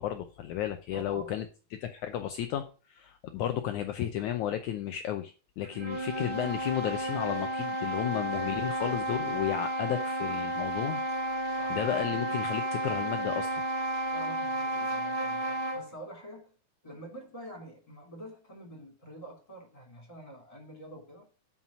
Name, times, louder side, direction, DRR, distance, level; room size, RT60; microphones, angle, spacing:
voice 1, 0.0-1.5 1.7-11.0 11.4-13.5, left 11 dB, 80° left, 7 dB, 1.8 m, -33 dB
voice 2, 0.9-1.3 11.5-11.8 14.1-16.5 16.8-21.3, right 1 dB, 10° left, 0 dB, 3.1 m, -47 dB
sound 1, 5.6-15.9, equal, 35° right, 0.7 m, -32 dB
7.5 x 5.7 x 7.2 m, 0.36 s
omnidirectional pair, 4.1 m